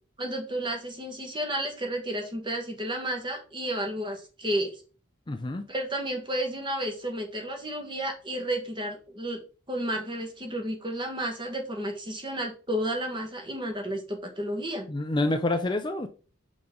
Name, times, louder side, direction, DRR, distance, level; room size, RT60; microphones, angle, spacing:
voice 1, 0.2-4.7 5.7-9.4 9.7-14.9, right 1 dB, 25° right, 3 dB, 1.5 m, -32 dB
voice 2, 5.3-5.6 14.9-16.1, left 2 dB, 25° left, 7 dB, 0.5 m, -27 dB
5.9 x 5.7 x 3.8 m, 0.37 s
head